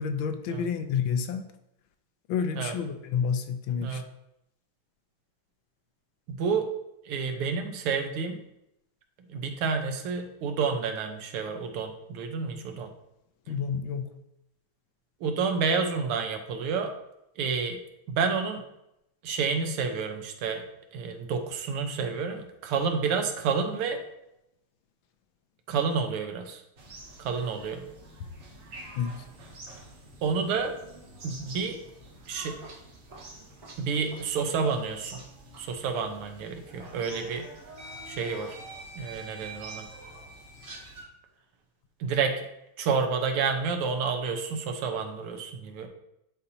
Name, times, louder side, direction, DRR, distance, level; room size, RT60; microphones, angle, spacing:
voice 1, 0.0-1.4 2.3-4.0 13.5-14.1 28.9-29.3, left 6 dB, 75° left, 8 dB, 1.3 m, -29 dB
voice 2, 6.3-6.7 7.1-8.4 9.3-12.9 15.2-16.9 17.4-17.8 18.1-18.6 19.2-20.6 20.9-24.0 25.7-26.6 27.2-27.8 30.2-30.7 31.2-31.8 32.3-32.6 33.8-35.2 35.6-37.5 38.1-38.6 39.0-39.9 42.0-42.5 42.8-45.9, right 5 dB, 85° right, 5 dB, 1.7 m, -29 dB
sound 1, 26.8-41.0, right 2 dB, 60° right, 1.9 m, -49 dB
sound 2, 32.2-35.3 35.5-35.7 36.8-36.9 37.8-41.1, right 2 dB, 45° right, 0.8 m, -46 dB
10.0 x 4.1 x 2.7 m, 0.83 s
omnidirectional pair, 2.4 m